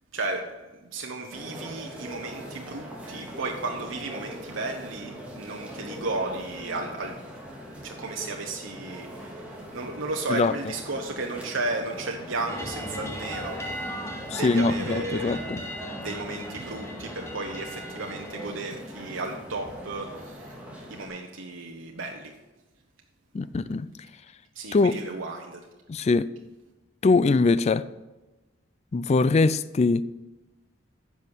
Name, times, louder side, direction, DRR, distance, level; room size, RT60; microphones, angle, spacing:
voice 1, 0.1-7.2 7.8-13.6 14.3-15.4 15.9-20.5 20.9-22.3 24.5-25.7, right 2 dB, 90° right, 1.1 m, -34 dB
sound 1, 1.3-21.1, equal, 5° right, 2.5 m, -41 dB
sound 2, 12.5-18.5, equal, 15° left, 1.3 m, -38 dB
voice 2, 14.3-15.6 23.3-23.9 24.7-25.0 25.9-26.3 27.0-27.8 28.9-30.0, left 3 dB, 35° left, 0.3 m, -22 dB
10.5 x 6.3 x 7.2 m
head